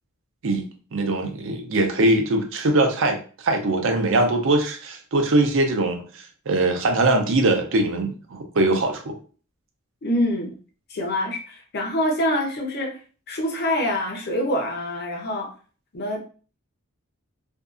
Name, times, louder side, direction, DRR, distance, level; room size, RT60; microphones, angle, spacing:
voice 1, 0.9-3.2 3.4-6.0 6.5-9.2, right 2 dB, 65° right, 4 dB, 0.5 m, -21 dB
voice 2, 10.0-10.5 10.9-13.0 13.3-15.5 15.9-16.2, left 1 dB, 50° left, 2 dB, 0.6 m, -25 dB
2.6 x 2.3 x 2.4 m, 0.39 s
head